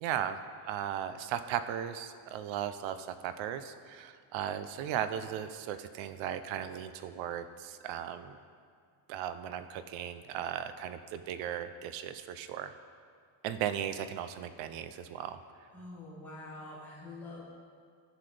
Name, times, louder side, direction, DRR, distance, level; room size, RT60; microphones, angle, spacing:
voice 1, 0.0-0.4 0.7-8.4 9.1-12.7 13.4-15.4, right 10 dB, 90° right, 11 dB, 0.7 m, -36 dB
voice 2, 15.7-17.4, left 2 dB, 5° left, -9 dB, 2.1 m, -46 dB
15.5 x 6.0 x 3.3 m, 2.1 s
cardioid pair, 175°, 44 cm